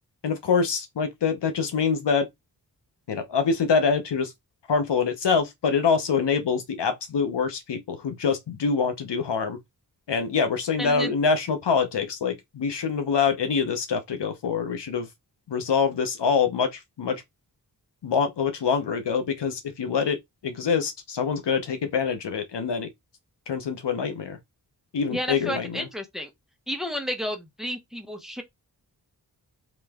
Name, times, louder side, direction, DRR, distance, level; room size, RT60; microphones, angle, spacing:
voice 1, 0.2-2.3 3.1-4.3 4.7-9.6 10.1-15.1 15.5-17.2 18.0-20.2 20.4-22.9 23.5-24.4 24.9-25.9, left 5 dB, 90° left, 0.9 m, -25 dB
voice 2, 10.8-11.1 25.1-26.3 26.7-28.4, equal, ahead, 1.0 m, -31 dB
3.2 x 3.1 x 3.5 m
cardioid pair, 55°, 41 cm